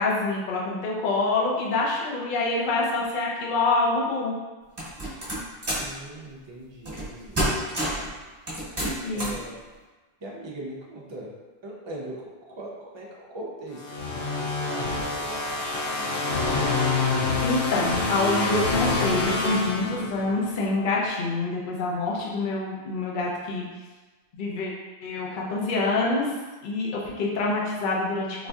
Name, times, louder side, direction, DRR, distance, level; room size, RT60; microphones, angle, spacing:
voice 1, 0.0-4.3 9.0-9.3 17.4-23.6 24.4-24.7 25.0-26.3 26.6-28.5, left 3 dB, 50° left, -3 dB, 0.7 m, -26 dB
sound 1, 4.8-5.9 6.8-7.1 7.3-8.1 8.5-9.4, right 1 dB, 25° right, 1.0 m, -28 dB
voice 2, 5.7-7.4 9.1-9.6 10.2-11.3 11.6-14.1 14.3-16.5, right 1 dB, 40° right, -3 dB, 0.4 m, -40 dB
sound 2, 13.8-20.5, left 3 dB, 80° left, 0.9 m, -26 dB
4.0 x 2.6 x 2.3 m, 1.3 s
omnidirectional pair, 1.2 m